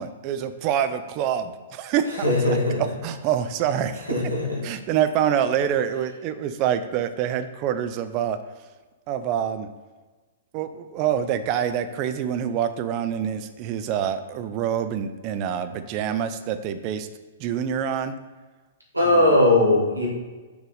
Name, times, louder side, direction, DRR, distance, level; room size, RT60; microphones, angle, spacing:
voice 1, 0.0-2.5 3.0-4.0 4.6-8.4 9.1-9.7 10.5-17.1 17.4-18.2 19.1-19.3, right 9 dB, 35° right, 10 dB, 0.5 m, -26 dB
voice 2, 2.2-2.8 4.1-4.6 18.9-20.1, left 2 dB, 85° right, -4 dB, 2.1 m, -19 dB
6.4 x 4.8 x 4.0 m, 1.3 s
figure-of-eight pair, 110°, 0 cm